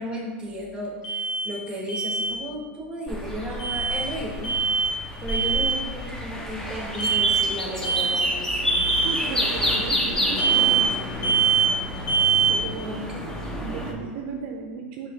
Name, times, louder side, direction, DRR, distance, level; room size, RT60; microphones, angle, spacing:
voice 1, 0.0-4.5 5.2-8.8 12.8-13.3, right 1 dB, 15° right, -2 dB, 1.1 m, -34 dB
Alarm, 1.0-1.5 1.9-2.3 3.6-4.0 4.4-4.9 5.3-5.8 7.0-7.5 7.8-8.3 8.7-9.1 10.4-10.9 11.2-11.7 12.1-12.5, right 6 dB, 45° left, 1.4 m, -23 dB
sound 1, 3.1-13.9, left 1 dB, 10° left, 0.6 m, -29 dB
voice 2, 9.0-11.4 12.5-12.9 13.6-15.1, right 6 dB, 55° right, 1 dB, 0.4 m, -35 dB
5.2 x 2.9 x 3.1 m, 1.5 s
hypercardioid pair, 115°, 6 cm